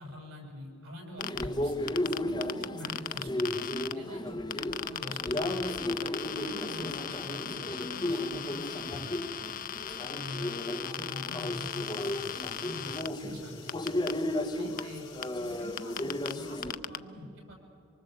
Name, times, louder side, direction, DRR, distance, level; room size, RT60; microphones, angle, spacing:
voice 1, 0.0-1.9 2.2-3.6 3.9-5.9 6.3-9.2 10.0-14.0 14.5-15.1 15.3-17.5, left 1 dB, 85° right, 2 dB, 7.0 m, -45 dB
sound 1, 1.2-1.4 1.9-3.9 4.5-13.1 13.7-14.1 14.8-14.9 15.2-15.3 15.8-16.3 16.6-17.0, left 9 dB, 45° left, 0.5 m, -37 dB
sound 2, 1.2-16.7, left 1 dB, 20° left, 1.1 m, -34 dB
sound 3, 11.5-16.6, left 9 dB, 65° left, 3.2 m, -53 dB
25.0 x 24.0 x 8.0 m, 2.5 s
head